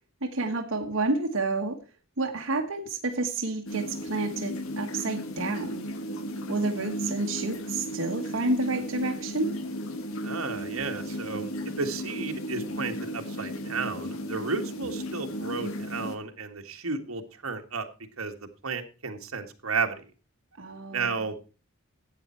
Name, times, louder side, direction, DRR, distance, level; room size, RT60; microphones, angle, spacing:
voice 1, 0.2-1.8 2.2-5.8 6.5-9.5 20.6-21.3, right 2 dB, 70° right, 2 dB, 1.3 m, -30 dB
sound 1, 3.7-16.2, equal, 80° left, 1.5 m, -35 dB
voice 2, 10.2-11.5 11.8-17.9 18.2-20.0 20.9-21.4, right 4 dB, 85° right, 5 dB, 1.7 m, -33 dB
12.5 x 9.0 x 4.4 m, 0.34 s
head